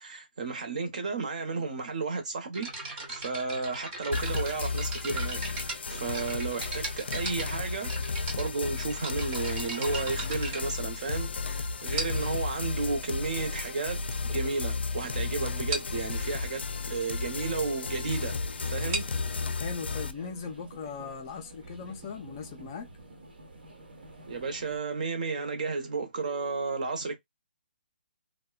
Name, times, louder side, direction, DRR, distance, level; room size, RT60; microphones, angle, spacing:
voice 1, 0.0-5.4 5.7-7.9 8.3-18.4 18.6-19.1 24.3-27.2, right 4 dB, 45° right, 0.8 m, -33 dB
sound 1, 2.5-11.4 12.0-12.4 13.2-13.3 13.9-14.0 14.3-14.5 14.8-14.9 15.2-15.3 15.7-16.0 18.7-22.2, right 2 dB, 15° right, 0.6 m, -39 dB
sound 2, 4.1-20.1, left 4 dB, 90° left, 0.4 m, -33 dB
sound 3, 18.1-24.8, right 2 dB, 65° right, 1.1 m, -49 dB
voice 2, 19.6-22.9, left 5 dB, 25° left, 0.4 m, -39 dB
2.6 x 2.1 x 2.3 m
hypercardioid pair, 170°, 6 cm